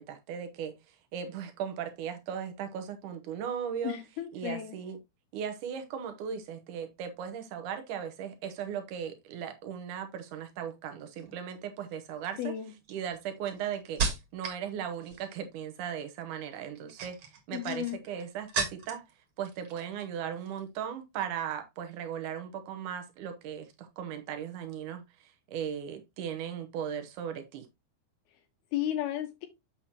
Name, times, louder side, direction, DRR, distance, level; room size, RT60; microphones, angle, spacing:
voice 1, 0.0-4.0 4.3-5.0 5.3-12.5 12.9-14.0 14.3-19.0 19.4-27.7, right 8 dB, 80° right, 1.8 m, -37 dB
voice 2, 3.8-4.7 12.4-12.7 17.5-18.0 28.7-29.5, left 12 dB, 80° left, 2.5 m, -33 dB
sound 1, 11.2-11.5 12.2-14.6 14.9-15.4 16.7-19.1 19.4-20.1 20.4-20.6, right 4 dB, 50° right, 2.2 m, -36 dB
7.2 x 6.8 x 2.8 m
omnidirectional pair, 4.9 m